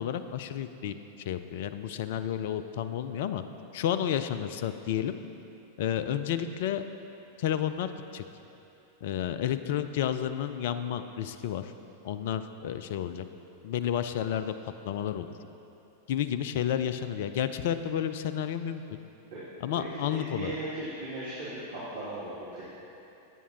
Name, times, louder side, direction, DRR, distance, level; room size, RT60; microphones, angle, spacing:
voice 1, 0.0-3.4 3.7-5.1 5.8-6.8 7.4-8.2 9.0-11.7 12.0-13.3 13.6-14.5 14.8-15.3 16.1-18.8 19.6-20.6, left 10 dB, 55° left, 11 dB, 0.5 m, -31 dB
voice 2, 19.7-22.6, right 2 dB, 65° right, -11 dB, 2.8 m, -38 dB
18.0 x 8.4 x 3.0 m, 2.9 s
figure-of-eight pair, 90°, 0 cm